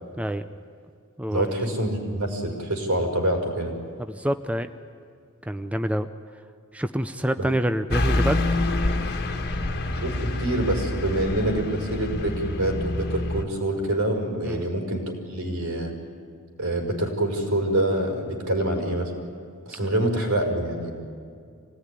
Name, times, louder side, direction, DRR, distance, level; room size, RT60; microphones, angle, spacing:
voice 1, 0.2-0.5 1.2-1.5 4.1-4.7 5.5-6.1 6.7-8.4 14.4-14.7, equal, 5° right, 9 dB, 0.5 m, -26 dB
voice 2, 1.3-3.7 7.4-7.5 10.0-15.9 16.6-19.1 19.7-20.9, right 1 dB, 75° right, 1 dB, 5.4 m, -26 dB
Car passing by / Truck, 7.9-13.4, left 2 dB, 45° left, 1.6 m, -27 dB
26.0 x 18.5 x 10.0 m, 2.3 s
head